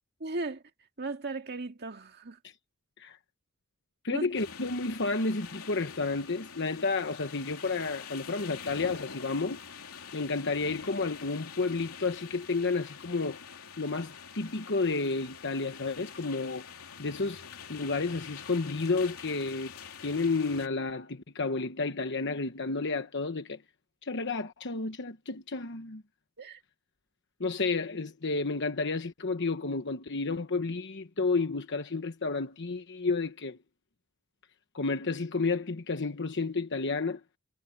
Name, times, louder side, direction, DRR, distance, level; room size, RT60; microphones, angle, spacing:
voice 1, 0.2-0.6 1.0-2.4 4.1-4.3 26.4-26.6, right 3 dB, 50° right, 2.1 m, -36 dB
voice 2, 4.0-9.6 10.1-13.4 13.8-16.7 17.0-19.7 20.0-23.6 24.0-26.0 27.4-33.6 34.7-37.2, left 3 dB, 55° left, 1.1 m, -31 dB
sound 1, 4.3-20.7, left 6 dB, 75° left, 3.2 m, -46 dB
head